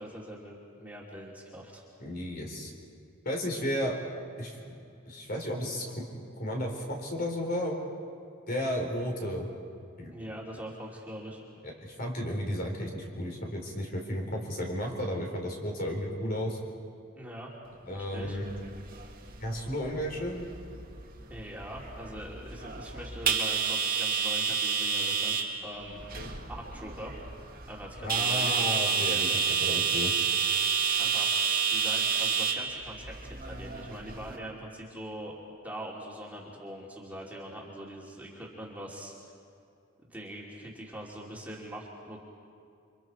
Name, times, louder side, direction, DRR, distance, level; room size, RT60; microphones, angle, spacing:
voice 1, 0.0-1.8 10.1-11.4 17.2-17.5 17.9-18.4 21.3-25.4 25.6-26.0 26.5-27.1 27.7-28.5 31.0-35.3 35.6-39.1 40.1-42.2, right 1 dB, 5° right, -4 dB, 2.9 m, -42 dB
voice 2, 2.0-2.7 3.2-4.0 4.4-4.7 5.1-7.8 8.5-9.5 10.0-10.1 11.8-16.6 17.9-18.5 19.4-20.5 26.2-26.3 28.0-30.1, equal, 45° left, 1 dB, 3.9 m, -33 dB
sound 1, 18.2-34.4, right 6 dB, 40° right, 2.1 m, -30 dB
29.5 x 25.0 x 4.7 m, 2.5 s
head